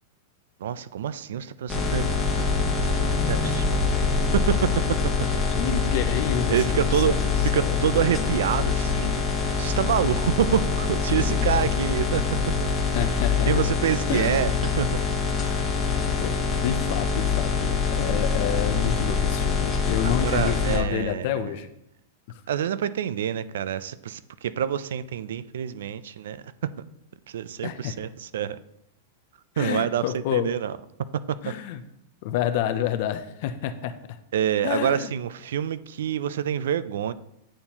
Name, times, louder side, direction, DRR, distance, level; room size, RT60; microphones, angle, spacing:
voice 1, 0.6-2.5 2.8-3.9 4.3-5.4 6.5-7.2 7.4-9.2 9.6-12.2 12.6-12.7 13.5-15.0 20.0-21.5 22.5-26.4 27.3-28.6 29.6-30.7 31.3-31.5 34.3-37.1, right 9 dB, 75° right, 16 dB, 0.3 m, -27 dB
sound 1, 1.7-20.8, left 5 dB, 10° left, 0.9 m, -24 dB
voice 2, 5.5-7.9 12.9-13.6 14.1-14.5 15.4-21.7 27.6-28.0 29.6-30.5 31.4-31.8 32.2-33.9 34.6-35.1, left 10 dB, 40° left, 9 dB, 0.4 m, -29 dB
8.6 x 4.2 x 2.9 m, 0.80 s
supercardioid pair, 175°, 0 cm